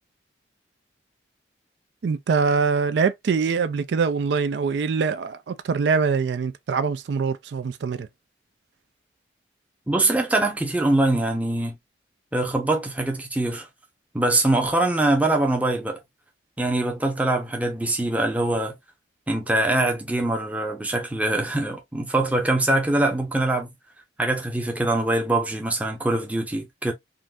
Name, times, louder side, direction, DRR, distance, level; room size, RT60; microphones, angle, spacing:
voice 1, 2.0-8.1, right 5 dB, 70° right, 0.3 m, -23 dB
voice 2, 9.9-11.8 12.3-13.7 14.1-16.0 16.6-18.7 19.3-23.7 24.2-26.9, right 2 dB, 10° right, 0.6 m, -23 dB
3.7 x 2.5 x 2.3 m
head